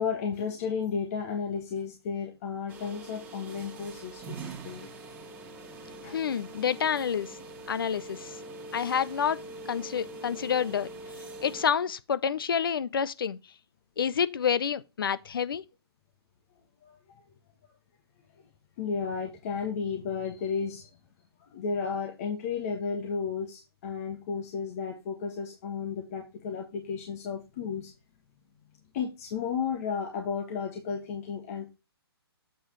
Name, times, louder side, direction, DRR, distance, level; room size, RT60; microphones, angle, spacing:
voice 1, 0.0-4.4 4.6-4.9 6.0-6.1 16.8-17.0 18.8-20.9 21.4-27.9 28.9-31.7, left 6 dB, 35° left, 1.5 m, -33 dB
sound 1, 2.7-11.7, right 2 dB, 15° right, 2.0 m, -43 dB
voice 2, 6.1-7.4 7.7-8.4 8.7-10.9 11.4-13.4 14.0-15.6, left 7 dB, 55° left, 0.7 m, -28 dB
8.0 x 6.5 x 3.1 m
figure-of-eight pair, 135°, 14 cm